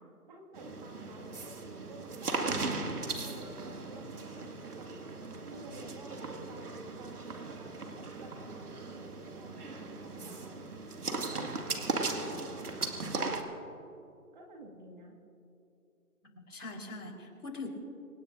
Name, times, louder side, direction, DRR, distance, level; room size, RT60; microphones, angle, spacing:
voice 1, 0.0-2.9 3.2-6.2 6.4-10.7 11.1-13.8 14.3-15.2, right 2 dB, 30° right, 0 dB, 2.1 m, -52 dB
sound 1, 0.5-13.4, right 3 dB, 80° right, 2.1 m, -38 dB
voice 2, 16.2-17.7, left 3 dB, 75° left, 1 dB, 4.3 m, -42 dB
25.5 x 17.0 x 2.6 m, 2.8 s
hypercardioid pair, 160°, 45 cm